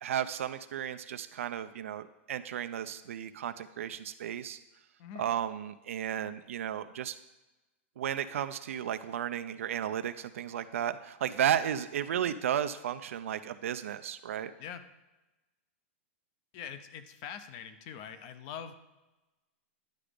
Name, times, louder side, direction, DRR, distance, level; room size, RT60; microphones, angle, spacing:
voice 1, 0.0-4.6 5.2-7.2 8.0-14.5, right 10 dB, 90° right, 10 dB, 0.4 m, -34 dB
voice 2, 16.5-18.7, left 8 dB, 30° left, 11 dB, 0.5 m, -43 dB
10.5 x 4.9 x 5.1 m, 1.0 s
supercardioid pair, 175°, 7 cm